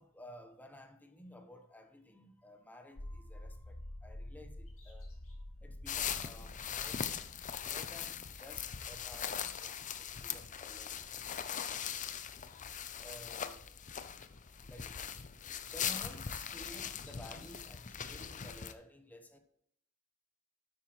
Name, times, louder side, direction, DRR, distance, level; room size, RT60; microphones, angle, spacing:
voice 1, 0.0-7.1 7.7-11.3 11.6-11.9 13.0-13.7 14.6-15.2 15.7-19.4, equal, 10° left, 1.1 m, -54 dB
sound 1, 2.9-8.8, left 1 dB, 85° left, 1.2 m, -49 dB
Bird vocalization bird call bird song, 4.7-9.3 9.5-12.3 12.7-12.8 13.7-15.2 15.4-17.5, left 2 dB, 70° left, 2.5 m, -63 dB
sound 2, 5.9-18.7, left 8 dB, 35° left, 0.6 m, -40 dB
10.5 x 8.6 x 3.1 m
head